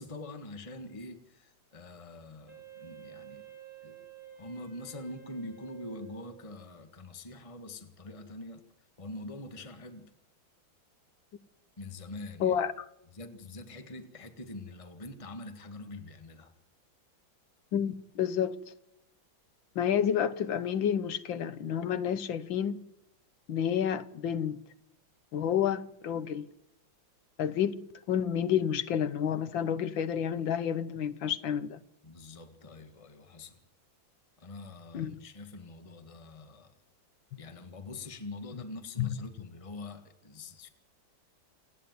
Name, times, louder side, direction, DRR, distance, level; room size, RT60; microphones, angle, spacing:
voice 1, 0.0-3.5 3.8-4.0 4.4-8.6 9.0-10.1 11.8-12.6 13.1-16.5 32.0-33.6 34.4-36.7 37.4-40.7, left 2 dB, 20° left, 1.6 m, -44 dB
Wind instrument woodwind instrument, 2.5-6.7, right 9 dB, 45° right, 3.5 m, -51 dB
voice 2, 12.4-12.9 17.7-18.6 19.8-22.8 23.5-24.6 25.3-26.5 27.4-31.8 34.9-35.2 39.0-39.1, left 9 dB, 85° left, 1.8 m, -30 dB
28.0 x 10.0 x 9.6 m
omnidirectional pair, 2.1 m